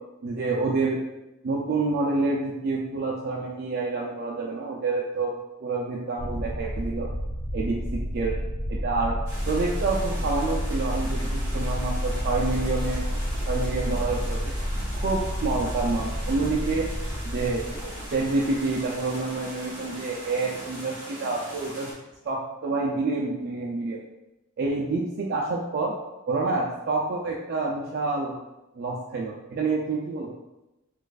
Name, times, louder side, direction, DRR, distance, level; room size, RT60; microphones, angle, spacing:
voice 1, 0.2-1.0 1.4-7.1 7.5-8.4 8.7-9.2 9.5-13.0 13.5-14.5 15.0-16.9 17.2-21.9 22.3-24.0 24.6-25.9 26.3-28.4 28.7-30.3, right 3 dB, 50° right, -3 dB, 0.4 m, -28 dB
sound 1, 6.2-19.2, equal, 65° left, 0.9 m, -30 dB
sound 2, 9.3-21.9, right 1 dB, 15° right, 1.3 m, -40 dB
4.2 x 2.4 x 2.4 m, 0.97 s
head